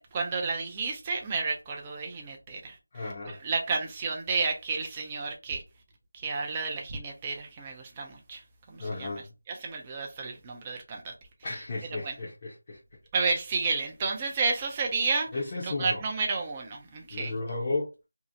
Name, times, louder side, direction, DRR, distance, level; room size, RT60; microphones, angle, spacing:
voice 1, 0.0-2.8 3.3-5.6 6.1-8.4 8.7-11.1 12.0-12.2 13.1-15.3 15.6-17.3, right 4 dB, 15° right, 0.4 m, -31 dB
voice 2, 2.9-3.4 8.8-9.3 11.4-12.8 15.3-16.0 17.1-17.9, left 2 dB, 30° left, 0.6 m, -34 dB
2.7 x 2.0 x 2.5 m
figure-of-eight pair, 170°, 0 cm